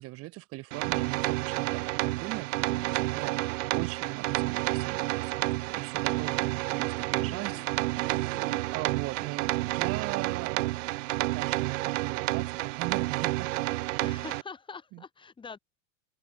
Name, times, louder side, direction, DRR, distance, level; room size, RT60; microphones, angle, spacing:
voice 1, 0.0-3.4 3.6-10.8 11.2-14.1 14.9-15.0, right 20 dB, 35° right, 1.6 m, -40 dB
sound 1, 0.7-14.4, right 20 dB, 65° right, 1.3 m, -30 dB
voice 2, 2.7-3.6 7.1-7.7 8.3-8.8 14.0-15.6, left 5 dB, 10° left, 3.6 m, -46 dB
open air
supercardioid pair, 160°, 41 cm